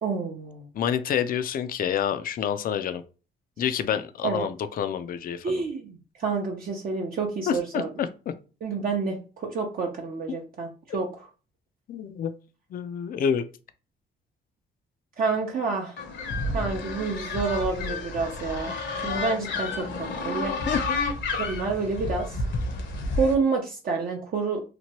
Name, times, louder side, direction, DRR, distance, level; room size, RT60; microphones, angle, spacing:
voice 1, 0.0-0.7 4.2-4.4 5.4-7.9 8.6-11.1 15.2-16.0 16.5-18.8 19.0-20.5 21.3-22.4 23.1-24.6, right 4 dB, 45° right, 0.6 m, -28 dB
voice 2, 0.7-3.0 3.6-5.6 7.5-8.3 11.9-12.3 12.7-13.4 20.7-20.9 22.8-22.9, left 8 dB, 45° left, 0.4 m, -28 dB
sound 1, 16.0-23.3, left 3 dB, 65° left, 0.8 m, -30 dB
2.9 x 2.2 x 2.9 m
cardioid pair, 90°, 20 cm